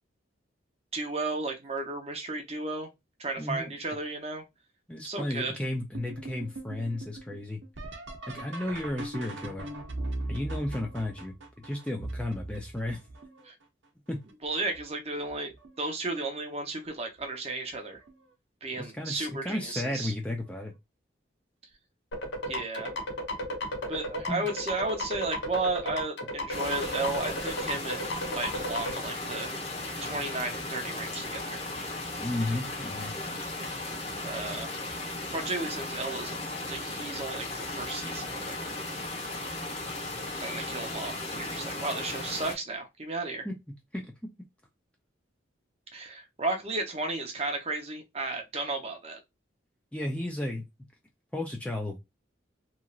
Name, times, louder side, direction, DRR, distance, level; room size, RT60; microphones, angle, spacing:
voice 1, 0.9-2.9 3.2-4.4 5.0-5.5 13.4-13.5 14.4-15.5 15.8-18.0 18.6-20.1 22.5-22.9 23.9-28.0 28.3-29.5 30.0-31.6 34.2-34.7 35.3-38.8 40.4-43.5 45.9-49.2, right 2 dB, 35° right, 0.7 m, -34 dB
voice 2, 3.4-3.7 4.9-7.6 8.3-9.7 10.3-13.0 14.1-14.2 18.8-20.7 24.3-24.5 32.2-33.1 43.4-44.1 49.9-50.6 51.3-52.0, left 1 dB, 5° left, 0.4 m, -33 dB
sound 1, 5.9-13.6 14.3-14.8 15.3-15.9 17.2-17.3 18.0-18.3 20.5-20.6 22.9-23.0, right 2 dB, 80° right, 0.7 m, -40 dB
sound 2, 22.1-29.0, left 1 dB, 70° left, 0.8 m, -34 dB
sound 3, 26.5-42.5, left 2 dB, 35° left, 1.1 m, -36 dB
3.0 x 2.4 x 2.3 m
head